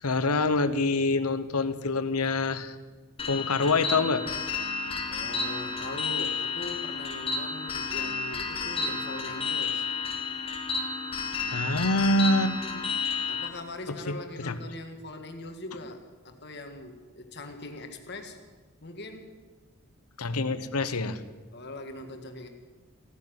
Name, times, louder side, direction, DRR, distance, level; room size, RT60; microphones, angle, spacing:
voice 1, 0.0-2.7 3.3-4.3 11.5-12.9 13.9-14.6 20.2-21.2, left 2 dB, 85° left, 12 dB, 1.0 m, -26 dB
sound 1, 3.2-13.5, left 4 dB, 25° left, 1.4 m, -31 dB
voice 2, 5.1-9.8 13.3-18.4 18.8-19.3 21.5-22.5, left 2 dB, 50° left, 5 dB, 1.8 m, -41 dB
16.0 x 9.5 x 9.4 m, 1.3 s
head